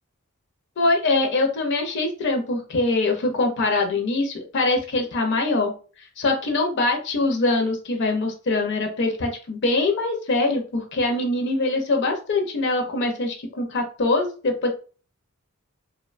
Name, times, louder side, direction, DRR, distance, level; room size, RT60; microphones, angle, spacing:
voice 1, 0.8-5.7 6.2-14.7, left 2 dB, 55° left, 3 dB, 0.5 m, -23 dB
2.5 x 2.1 x 2.4 m, 0.38 s
head